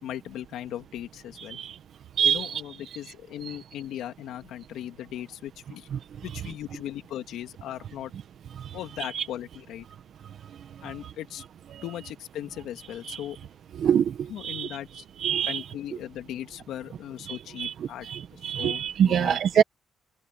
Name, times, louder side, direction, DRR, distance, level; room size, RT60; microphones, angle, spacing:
voice 1, 0.0-1.6 2.2-5.9 6.2-8.1 8.7-9.8 10.8-11.4 11.8-13.4 14.3-15.0 15.5-19.6, left 12 dB, 85° left, 2.7 m, -38 dB
voice 2, 2.2-2.5 5.9-6.0 9.1-9.2 13.1-13.2 13.8-14.8 15.2-15.6 17.3-17.7 18.1-19.6, right 8 dB, 50° right, 1.1 m, -25 dB
cardioid pair, 180°, 0 cm